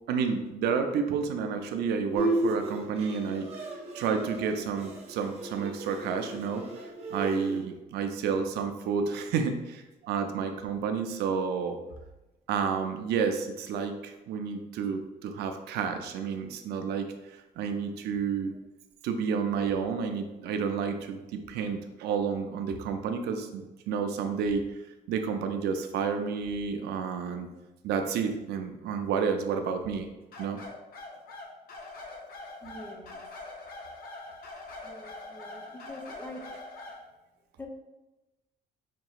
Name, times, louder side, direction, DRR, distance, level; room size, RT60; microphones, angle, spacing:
voice 1, 0.1-3.5 3.9-6.7 7.1-11.8 12.5-18.5 19.0-24.8 25.1-27.5 27.8-30.1 30.4-30.6, right 6 dB, 75° right, 6 dB, 0.5 m, -30 dB
Bowed string instrument, 2.1-7.6, right 1 dB, 40° right, 1.0 m, -34 dB
sound 1, 30.3-37.0, left 2 dB, 60° left, 0.8 m, -43 dB
voice 2, 32.6-33.2 34.8-36.6 37.6-37.7, left 1 dB, 10° left, 1 dB, 0.6 m, -45 dB
5.1 x 2.8 x 2.4 m, 1.0 s
cardioid pair, 110°, 17 cm